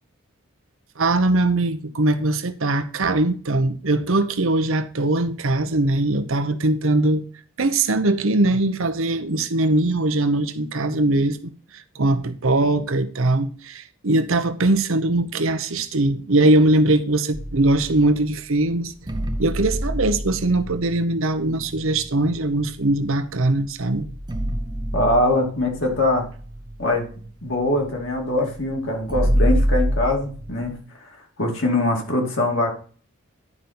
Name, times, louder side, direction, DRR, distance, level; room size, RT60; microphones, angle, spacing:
voice 1, 1.0-7.2 7.6-18.9 19.4-24.1, right 2 dB, 70° right, 0.9 m, -21 dB
sound 1, 17.3-18.3 19.1-23.0 23.5-23.6 23.9-30.8, equal, 20° right, 0.7 m, -27 dB
voice 2, 24.9-26.3 26.8-27.1 27.4-30.7 31.4-32.7, left 1 dB, 60° left, 2.5 m, -22 dB
11.0 x 5.3 x 4.3 m
head